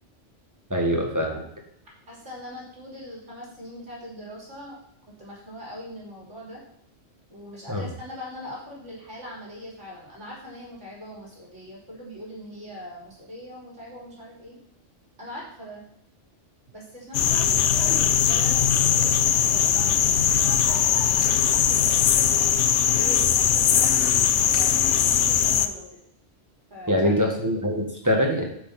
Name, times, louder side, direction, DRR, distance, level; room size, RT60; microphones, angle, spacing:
voice 1, 0.7-1.4 7.7-7.9 26.9-28.4, equal, 15° right, 1 dB, 1.7 m, -23 dB
voice 2, 2.1-4.8 5.2-6.6 7.3-14.6 15.2-15.8 16.7-23.9 24.5-25.8 26.7-27.1, equal, 70° right, -4 dB, 3.7 m, -41 dB
sound 1, 17.1-25.7, left 9 dB, 70° left, 0.9 m, -20 dB
8.5 x 6.2 x 5.8 m, 0.71 s
omnidirectional pair, 1.3 m